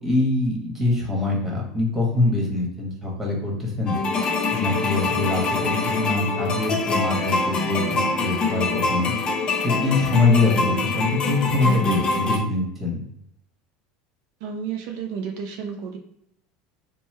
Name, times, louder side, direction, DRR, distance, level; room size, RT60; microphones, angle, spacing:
voice 1, 0.0-4.0 4.5-9.1 9.6-13.0, left 3 dB, 10° right, -2 dB, 1.2 m, -23 dB
sound 1, 3.9-12.4, left 3 dB, 30° left, 0.5 m, -24 dB
voice 2, 14.4-16.0, right 6 dB, 70° right, 3 dB, 0.4 m, -31 dB
3.0 x 2.1 x 3.2 m, 0.78 s
supercardioid pair, 120°, 3 cm